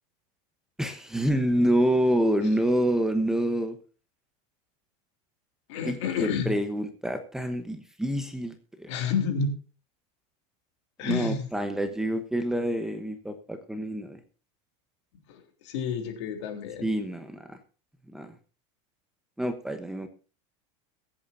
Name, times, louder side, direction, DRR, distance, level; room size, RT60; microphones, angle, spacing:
voice 1, 0.8-3.8 5.8-8.9 11.0-14.2 16.8-17.6 18.1-18.3 19.4-20.1, right 1 dB, 5° right, 7 dB, 1.0 m, -27 dB
voice 2, 5.7-6.5 8.9-9.5 11.0-11.5 15.3-16.9, left 6 dB, 70° left, 5 dB, 3.4 m, -30 dB
22.5 x 8.7 x 2.7 m, 0.36 s
supercardioid pair, 165°, 15 cm